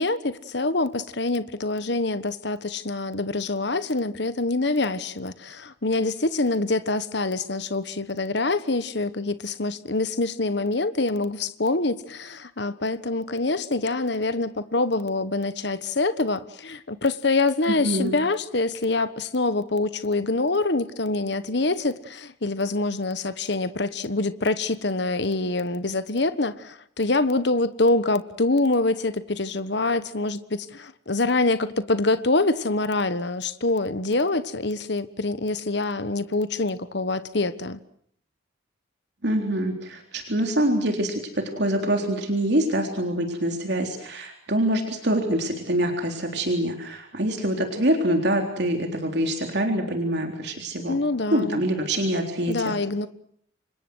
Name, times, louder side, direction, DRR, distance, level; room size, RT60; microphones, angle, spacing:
voice 1, 0.0-37.8 50.9-51.6 52.5-53.1, left 2 dB, 60° left, 1.3 m, -25 dB
voice 2, 17.7-18.2 39.2-51.0 51.3-52.7, right 1 dB, 55° right, 3.7 m, -25 dB
29.0 x 25.5 x 6.4 m
head